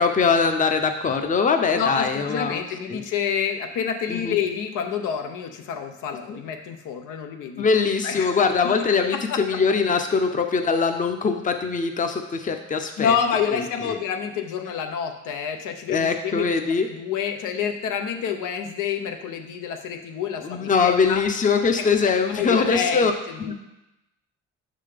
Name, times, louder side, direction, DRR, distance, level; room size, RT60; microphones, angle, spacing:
voice 1, 0.0-2.6 2.9-3.0 4.1-4.4 6.3-6.4 7.6-13.2 13.5-14.0 15.9-16.9 20.4-23.1 23.5-23.6, left 5 dB, 25° left, 6 dB, 0.6 m, -22 dB
voice 2, 1.7-7.6 8.0-8.4 8.6-8.7 9.1-9.6 13.0-16.5 16.9-21.2 22.3-23.5, left 7 dB, 85° left, 5 dB, 0.7 m, -28 dB
5.6 x 3.8 x 5.0 m, 0.92 s
cardioid pair, 90°, 30 cm